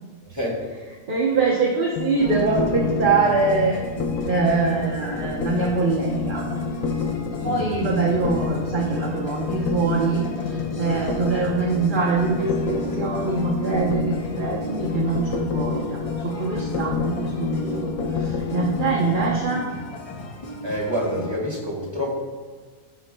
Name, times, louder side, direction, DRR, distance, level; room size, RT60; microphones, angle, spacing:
voice 1, 0.3-0.6 7.4-7.7 20.6-22.1, equal, 20° right, -7 dB, 2.3 m, -27 dB
voice 2, 1.1-3.8 4.3-6.5 7.4-19.6, right 4 dB, 45° right, -3 dB, 1.0 m, -24 dB
sound 1, 2.0-19.4, left 5 dB, 90° left, 1.1 m, -29 dB
sound 2, 2.2-21.4, left 1 dB, 40° left, 0.5 m, -35 dB
15.5 x 6.1 x 2.2 m, 1.5 s
omnidirectional pair, 1.4 m